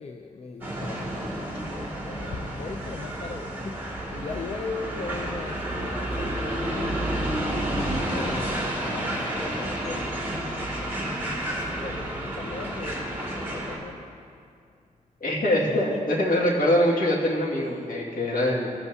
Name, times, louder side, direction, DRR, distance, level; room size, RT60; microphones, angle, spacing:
voice 1, 0.0-7.1 8.1-11.2 11.5-14.0 15.5-16.0 17.6-17.9, left 4 dB, 50° left, 4 dB, 0.5 m, -39 dB
sound 1, 0.6-13.8, right 1 dB, 15° right, 2.1 m, -30 dB
voice 2, 15.2-18.7, left 1 dB, 80° left, -4 dB, 2.0 m, -23 dB
17.0 x 8.0 x 2.7 m, 2.4 s
wide cardioid pair, 120°, 14 cm